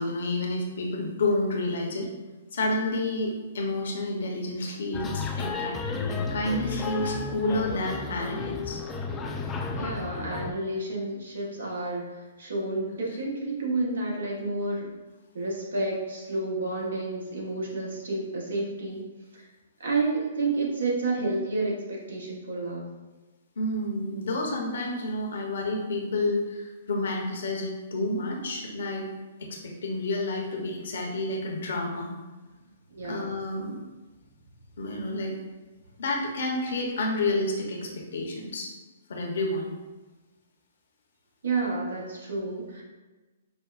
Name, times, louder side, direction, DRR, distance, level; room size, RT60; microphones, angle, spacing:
voice 1, 0.0-2.1 2.5-8.8 23.6-29.0 29.4-32.1 33.0-33.8 34.8-35.3 36.0-38.7 39.1-39.7, left 2 dB, 70° left, 1 dB, 0.8 m, -30 dB
sound 1, 4.9-10.5, left 5 dB, 20° left, 0.3 m, -33 dB
voice 2, 9.7-14.9 15.3-19.0 19.3-19.5 19.8-22.9 32.9-33.3 41.4-42.8, right 2 dB, 80° right, -3 dB, 1.1 m, -30 dB
5.1 x 2.1 x 2.4 m, 1.2 s
hypercardioid pair, 130°, 0 cm